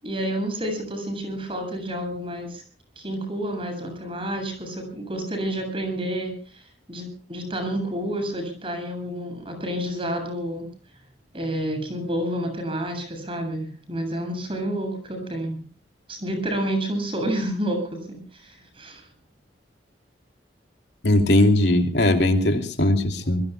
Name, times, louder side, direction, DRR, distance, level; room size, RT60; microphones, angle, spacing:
voice 1, 0.0-2.6 3.0-10.7 11.3-15.6 16.1-19.1, right 1 dB, 30° right, 6 dB, 7.7 m, -29 dB
voice 2, 21.0-23.4, left 1 dB, 65° left, 5 dB, 2.9 m, -19 dB
26.5 x 22.0 x 2.3 m, 0.39 s
head